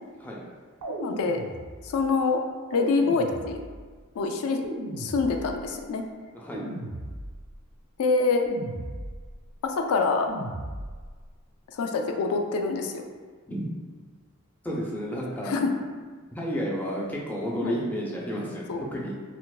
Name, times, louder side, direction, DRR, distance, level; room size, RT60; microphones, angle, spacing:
sound 1, 0.8-2.0 2.7-3.9 4.6-5.8 6.5-7.6 8.5-9.4 10.3-11.2, right 1 dB, 85° right, 0.5 m, -37 dB
voice 1, 0.9-1.4 1.8-2.4 2.7-3.6 4.2-4.6 4.9-6.0 8.0-8.5 9.6-10.3 11.7-13.0 15.5-15.8 17.6-17.8 18.7-18.8, left 4 dB, 75° left, 4 dB, 0.4 m, -25 dB
voice 2, 14.6-15.6 16.3-19.1, equal, 10° left, -4 dB, 0.4 m, -31 dB
4.2 x 2.0 x 2.3 m, 1.5 s
head